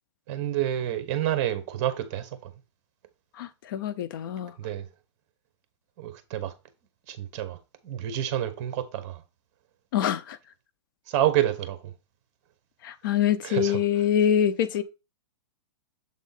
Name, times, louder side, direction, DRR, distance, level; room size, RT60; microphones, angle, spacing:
voice 1, 0.3-2.5 4.6-4.9 6.0-6.5 7.1-7.6 7.8-9.2 11.1-11.9 13.4-13.8, right 12 dB, 35° right, 1.1 m, -28 dB
voice 2, 3.4-4.5 9.9-10.4 12.8-14.8, left 9 dB, 50° left, 0.5 m, -25 dB
7.4 x 3.6 x 4.0 m
hypercardioid pair, 160°, 15 cm